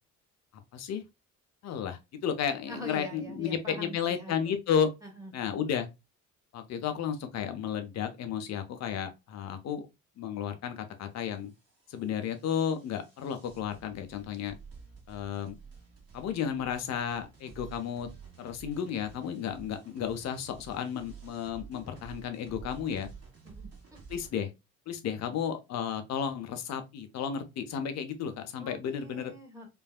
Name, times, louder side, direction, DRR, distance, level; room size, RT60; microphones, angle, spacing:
voice 1, 0.7-1.0 1.6-4.9 5.3-5.9 6.5-9.9 10.2-11.5 11.9-14.5 15.1-15.6 16.1-18.1 18.4-23.1 24.1-24.5 24.9-29.3, left 8 dB, 40° left, 0.7 m, -33 dB
voice 2, 2.7-4.6 5.0-5.3 23.4-24.0 28.5-29.7, right 1 dB, 10° right, 1.7 m, -45 dB
sound 1, 11.1-24.3, right 6 dB, 35° right, 1.8 m, -51 dB
4.5 x 2.5 x 2.4 m
figure-of-eight pair, 50°, 41 cm